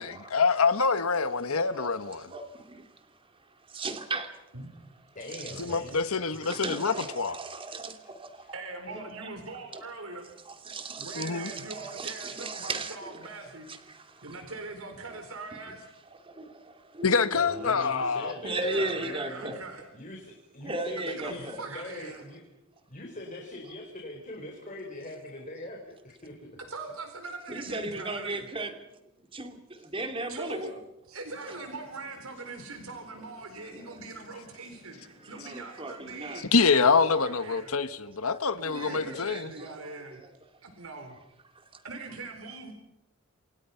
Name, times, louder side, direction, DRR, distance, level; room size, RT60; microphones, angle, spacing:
voice 1, 0.0-2.2 5.6-7.4 11.2-11.5 17.0-18.3 36.5-39.5, left 4 dB, 80° left, 1.3 m, -26 dB
voice 2, 3.7-4.3 5.3-5.8 6.4-8.3 8.9-9.3 9.7-9.8 10.5-13.3 13.7-13.8 14.3-14.4 15.1-15.2 15.5-15.6 16.4-16.5 16.9-17.2 17.5-19.6 20.6-21.6 27.5-28.8 29.3-29.6 29.9-30.8 31.5-31.6 35.3-36.4 38.3-38.4 38.6-39.7, right 2 dB, 25° right, 2.8 m, -36 dB
voice 3, 5.1-6.0 17.3-19.5 19.9-22.4 22.9-26.3 39.1-39.2, left 1 dB, 35° left, 4.7 m, -42 dB
voice 4, 8.5-10.3 11.0-13.7 14.2-15.9 18.6-19.8 21.1-22.2 26.7-28.4 30.3-30.7 31.1-36.8 37.1-37.7 38.7-40.2 40.6-41.2 41.8-42.7, right 3 dB, 75° right, 4.1 m, -41 dB
sound 1, 31.2-36.1, left 1 dB, 5° right, 7.9 m, -57 dB
28.0 x 27.5 x 5.8 m
head